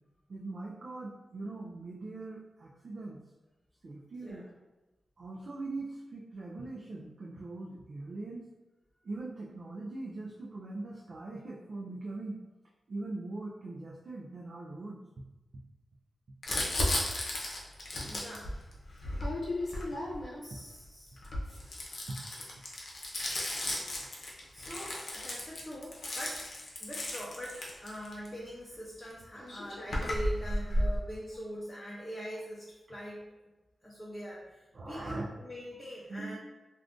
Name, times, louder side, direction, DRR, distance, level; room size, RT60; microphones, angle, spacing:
voice 1, 0.3-3.2 3.8-4.5 5.2-8.4 9.0-12.4 12.9-15.0 22.1-22.2 34.7-35.3 36.1-36.4, right 2 dB, 60° right, -3 dB, 0.4 m, -41 dB
Crumpling crinkling, 16.4-20.5 21.2-28.3 29.1-29.2 29.4-31.0, left 1 dB, 60° left, 0.7 m, -34 dB
voice 2, 18.1-18.5 20.4-21.2 24.5-26.5 26.8-33.2 33.8-36.4, equal, 15° left, -6 dB, 0.5 m, -43 dB
2.4 x 2.4 x 3.5 m, 1.1 s
wide cardioid pair, 120°, 0 cm